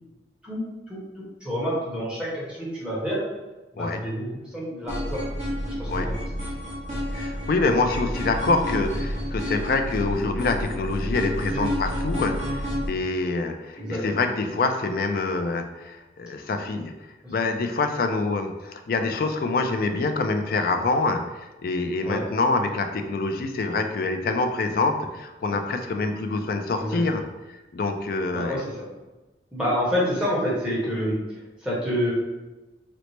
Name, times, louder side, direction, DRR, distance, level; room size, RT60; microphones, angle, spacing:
voice 1, 0.4-3.2 3.7-4.3 4.5-5.2 5.6-6.1 11.5-11.7 13.8-14.0 17.2-17.3 22.0-22.2 25.4-25.6 26.8-27.0 28.3-28.8 29.5-32.1, equal, 5° right, -7 dB, 0.9 m, -28 dB
sound 1, 4.9-12.9, equal, 35° right, 0.8 m, -30 dB
voice 2, 7.1-16.9 17.3-27.2 27.7-28.6, left 3 dB, 50° left, 6 dB, 0.3 m, -26 dB
4.1 x 2.0 x 3.1 m, 1.1 s
head